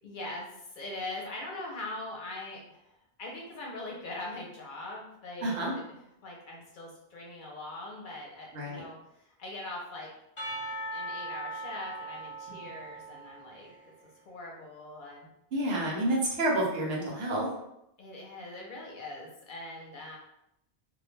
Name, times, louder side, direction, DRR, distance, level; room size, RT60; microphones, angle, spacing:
voice 1, 0.0-10.1 10.9-13.7 14.3-15.3 18.0-20.2, left 2 dB, 60° left, -2 dB, 0.7 m, -42 dB
voice 2, 5.4-5.7 8.5-8.8 12.5-12.6 15.5-17.5, right 1 dB, 70° right, -2 dB, 0.9 m, -29 dB
Percussion / Church bell, 10.4-14.0, right 1 dB, 20° left, 0.5 m, -39 dB
2.3 x 2.1 x 3.1 m, 0.81 s
omnidirectional pair, 1.1 m